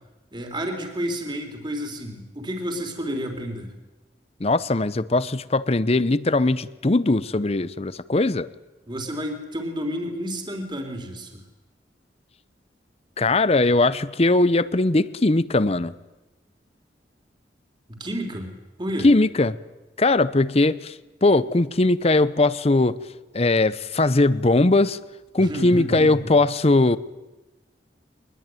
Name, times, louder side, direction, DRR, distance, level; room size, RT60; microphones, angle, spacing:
voice 1, 0.3-3.7 8.9-11.4 18.0-18.5 18.8-19.1 25.4-26.3, equal, 25° right, 4 dB, 3.5 m, -30 dB
voice 2, 4.4-8.5 13.2-15.9 19.0-19.6 20.0-20.9 21.2-23.0 23.3-25.0 25.3-27.0, left 2 dB, 35° left, 16 dB, 0.8 m, -20 dB
23.5 x 21.5 x 9.2 m, 1.1 s
head